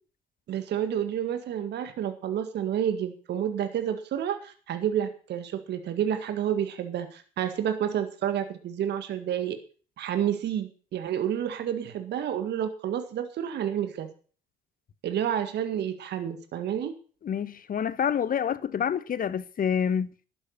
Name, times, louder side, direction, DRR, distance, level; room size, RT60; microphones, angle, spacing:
voice 1, 0.5-9.6 10.0-14.1 15.0-16.9, right 9 dB, 60° right, 1.8 m, -29 dB
voice 2, 17.2-20.1, left 8 dB, 45° left, 1.1 m, -27 dB
11.5 x 10.0 x 6.5 m
hypercardioid pair, 45°, 19 cm